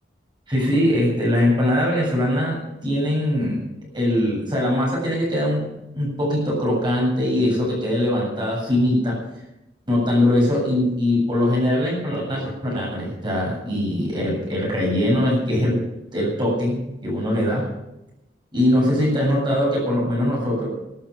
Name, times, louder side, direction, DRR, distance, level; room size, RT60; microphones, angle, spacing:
voice 1, 0.5-3.6 3.9-5.6 5.9-9.2 9.9-15.8 16.1-17.6 18.5-20.7, left 1 dB, 25° right, -3 dB, 7.8 m, -21 dB
13.5 x 13.0 x 6.9 m, 0.88 s
head